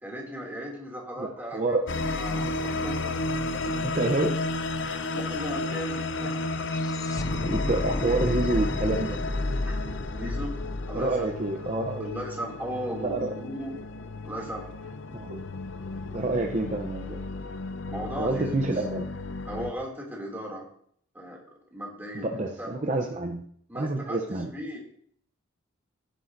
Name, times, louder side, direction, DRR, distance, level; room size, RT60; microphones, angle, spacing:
voice 1, 0.0-3.2 4.8-6.5 9.6-9.8 10.1-10.5 10.9-11.2 11.6-11.7 12.0-13.8 14.2-14.7 17.9-18.7 19.5-20.6 21.1-21.4 21.7-22.7 23.7-24.8, equal, 10° right, -2 dB, 2.6 m, -37 dB
voice 2, 1.2-1.9 2.4-2.5 3.7-4.4 7.4-9.2 10.9-12.1 13.0-13.3 15.1-15.4 16.1-17.2 18.2-19.1 22.1-23.4 23.8-24.5, right 2 dB, 35° right, 3 dB, 0.7 m, -28 dB
sound 1, 1.9-19.7, left 2 dB, 60° left, 0.6 m, -33 dB
sound 2, 4.4-12.3, left 2 dB, 15° left, 0.3 m, -32 dB
16.0 x 10.0 x 2.6 m, 0.64 s
head